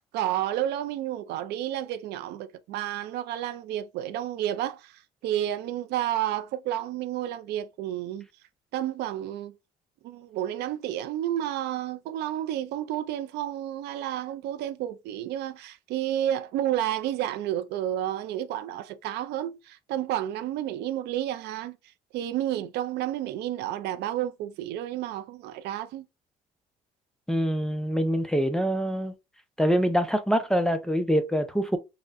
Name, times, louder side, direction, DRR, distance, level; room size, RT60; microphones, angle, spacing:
voice 1, 0.0-8.3 8.7-9.5 10.0-21.8 22.1-26.0, right 12 dB, 80° right, 0.4 m, -31 dB
voice 2, 27.3-29.1 29.6-31.8, equal, 5° left, 0.5 m, -25 dB
3.6 x 2.1 x 2.5 m
cardioid pair, 110°, 17 cm